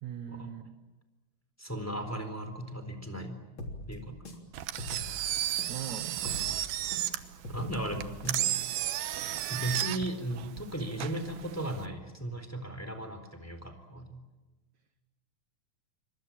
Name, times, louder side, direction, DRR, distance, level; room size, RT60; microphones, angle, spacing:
voice 1, 0.0-0.7 5.7-6.2, right 9 dB, 65° right, 10 dB, 2.0 m, -40 dB
voice 2, 1.6-3.4 3.9-4.2 7.5-8.5 9.5-14.2, right 1 dB, 5° left, 7 dB, 3.5 m, -36 dB
sound 1, 3.6-5.9 6.2-8.6, left 1 dB, 35° left, 3.9 m, -42 dB
Engine, 4.5-11.9, right 13 dB, 90° right, 3.0 m, -34 dB
29.0 x 25.5 x 7.4 m, 1.2 s
omnidirectional pair, 4.2 m